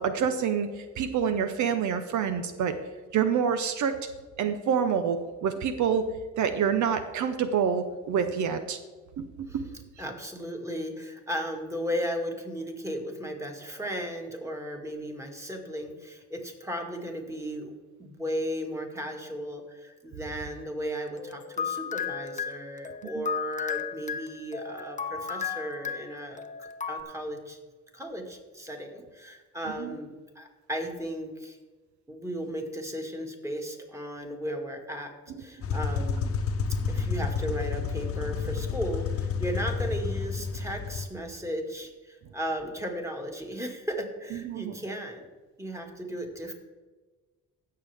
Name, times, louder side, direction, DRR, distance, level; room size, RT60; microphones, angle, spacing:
voice 1, 0.0-2.7 3.1-4.0 4.4-6.0 6.4-8.8 9.2-9.6 23.2-23.3 29.8-30.0 44.3-44.8, right 7 dB, 75° right, 9 dB, 0.8 m, -27 dB
voice 2, 10.0-17.7 18.0-27.6 27.9-31.6 32.1-35.1 35.4-36.3 36.9-45.3 45.6-46.5, equal, 10° right, 2 dB, 2.0 m, -35 dB
sound 1, 21.2-27.0, left 7 dB, 25° left, 0.7 m, -34 dB
sound 2, 35.6-41.0, left 5 dB, 50° left, 0.9 m, -30 dB
16.5 x 6.7 x 3.5 m, 1.3 s
cardioid pair, 90°, 30 cm